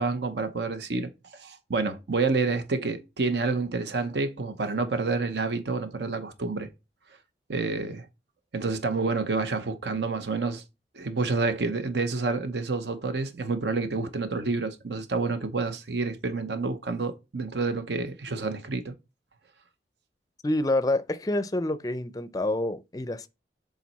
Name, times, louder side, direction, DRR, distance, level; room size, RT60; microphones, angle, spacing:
voice 1, 0.0-6.7 7.5-8.1 8.5-10.6 10.9-18.9, right 3 dB, 75° right, 0.8 m, -28 dB
voice 2, 20.4-23.3, left 1 dB, 20° left, 0.4 m, -27 dB
7.4 x 3.9 x 4.1 m
head